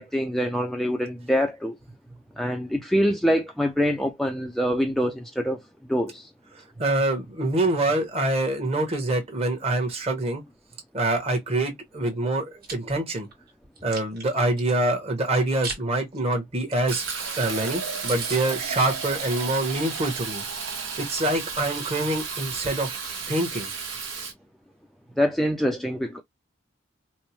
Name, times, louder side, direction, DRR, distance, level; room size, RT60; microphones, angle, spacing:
voice 1, 0.0-1.8 2.4-5.6 5.9-6.3 25.2-26.2, equal, ahead, 0.3 m, -25 dB
voice 2, 6.8-10.4 10.9-13.3 13.8-17.1 17.4-20.4 21.0-22.9 23.3-23.7, right 2 dB, 30° right, 1.0 m, -25 dB
Chewing mastication, 12.4-12.7 13.2-14.7 15.3-15.8 16.1-16.3 16.7-16.8 17.0-17.1 17.5-17.6 17.8-17.9 18.1-18.4, right 4 dB, 50° right, 1.3 m, -36 dB
Fill (with liquid), 16.9-24.3, right 5 dB, 85° right, 1.0 m, -33 dB
4.3 x 2.0 x 2.8 m
head